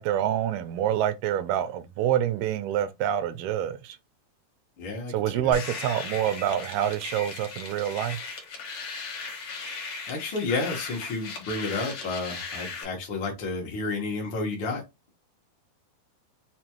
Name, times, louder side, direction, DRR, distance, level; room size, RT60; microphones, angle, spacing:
voice 1, 0.0-4.0 5.1-8.2, right 10 dB, 85° right, 2.4 m, -27 dB
voice 2, 4.8-5.6 10.1-14.8, left 3 dB, 90° left, 1.0 m, -31 dB
sound 1, 5.5-12.8, left 4 dB, 65° left, 1.4 m, -37 dB
5.9 x 2.3 x 2.9 m
omnidirectional pair, 4.4 m